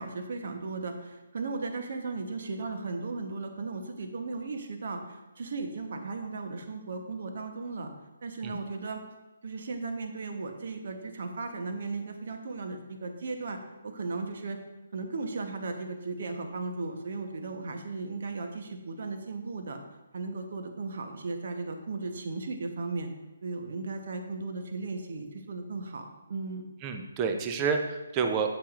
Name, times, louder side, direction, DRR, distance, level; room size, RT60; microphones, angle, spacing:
voice 1, 0.0-7.9 8.2-9.0 9.4-14.6 14.9-19.8 20.1-23.1 23.4-26.6, right 3 dB, 55° right, 5 dB, 1.0 m, -36 dB
voice 2, 26.8-28.6, right 5 dB, 25° right, 5 dB, 0.7 m, -29 dB
8.4 x 7.1 x 2.5 m, 1.1 s
figure-of-eight pair, 140°, 0 cm